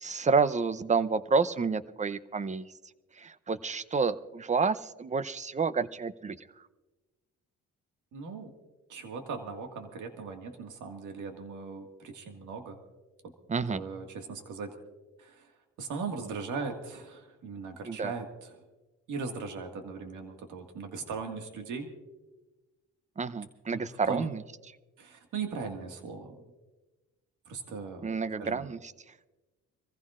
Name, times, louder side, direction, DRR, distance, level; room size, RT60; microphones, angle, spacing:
voice 1, 0.0-2.7 3.2-6.4 13.5-13.8 17.9-18.1 23.2-24.4 28.0-28.9, right 5 dB, 25° right, 15 dB, 0.6 m, -29 dB
voice 2, 8.1-8.5 8.9-12.8 13.2-13.3 13.7-14.7 15.2-15.5 15.8-18.6 19.1-21.9 23.7-24.3 25.0-26.5 27.5-28.7, right 4 dB, 80° right, 4 dB, 1.9 m, -39 dB
26.0 x 15.5 x 2.5 m, 1.1 s
cardioid pair, 90°, 30 cm